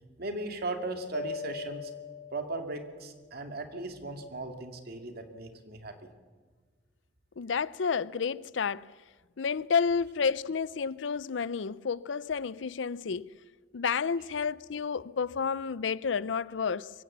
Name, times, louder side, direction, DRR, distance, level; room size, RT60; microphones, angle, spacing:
voice 1, 0.2-1.9 2.3-6.1, right 2 dB, 55° right, 2.3 m, -37 dB
Mallet percussion, 1.1-3.2, left 4 dB, 45° left, 1.0 m, -41 dB
voice 2, 7.4-8.9 9.4-13.3 13.7-16.9, left 6 dB, 80° left, 0.5 m, -30 dB
23.5 x 16.5 x 7.3 m
head